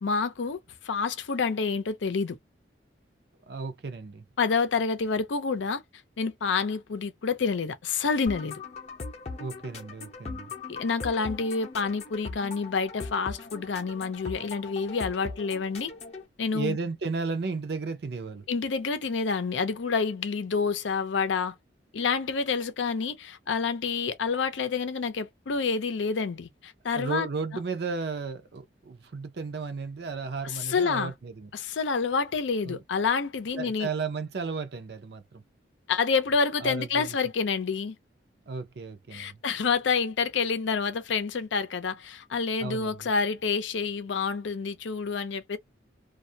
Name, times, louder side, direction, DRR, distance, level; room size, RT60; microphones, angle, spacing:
voice 1, 0.0-2.4 4.4-5.8 6.2-8.6 10.7-15.9 16.4-16.8 18.5-21.6 21.9-27.3 30.4-31.1 31.5-33.9 35.9-38.0 39.1-45.6, left 5 dB, 90° left, 0.5 m, -28 dB
voice 2, 3.5-4.2 9.4-10.5 16.5-18.5 26.9-31.5 32.6-32.8 33.5-35.4 36.6-37.2 38.5-39.4 42.6-43.1, right 4 dB, 60° right, 0.5 m, -34 dB
sound 1, 8.3-16.2, left 3 dB, 35° left, 0.6 m, -40 dB
2.3 x 2.1 x 2.7 m
head